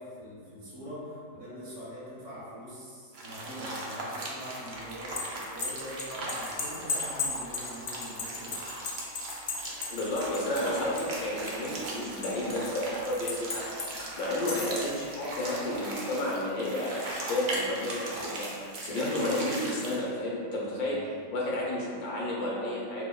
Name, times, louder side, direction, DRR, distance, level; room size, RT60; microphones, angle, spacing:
voice 1, 0.0-8.6 10.4-10.6 18.1-18.2 18.8-19.4 20.6-21.8, equal, 60° right, -9 dB, 1.5 m, -44 dB
sound 1, 3.1-20.1, right 1 dB, 90° right, 0.4 m, -38 dB
sound 2, 4.9-11.2 11.5-12.7 13.3-13.9 14.3-14.8, left 4 dB, 65° left, 0.6 m, -35 dB
voice 2, 9.9-13.6 14.2-18.5 18.8-21.0 21.3-23.1, left 1 dB, 85° left, -5 dB, 1.3 m, -31 dB
5.3 x 2.1 x 2.2 m, 2.2 s
omnidirectional pair, 1.6 m